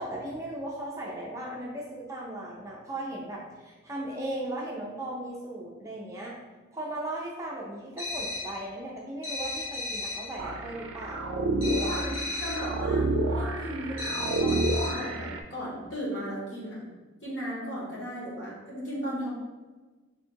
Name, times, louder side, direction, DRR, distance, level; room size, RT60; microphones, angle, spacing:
voice 1, 0.0-6.4 6.7-11.2 11.6-11.9, right 1 dB, 15° right, -3 dB, 0.5 m, -37 dB
sound 1, 8.0-8.6 9.2-10.3 11.6-12.7 14.0-15.1, left 2 dB, 80° left, 1.4 m, -35 dB
sound 2, 10.4-15.4, right 2 dB, 70° right, 0.4 m, -29 dB
voice 2, 12.4-16.9 17.2-19.3, equal, 55° left, -6 dB, 1.4 m, -36 dB
3.4 x 2.4 x 4.5 m, 1.3 s
head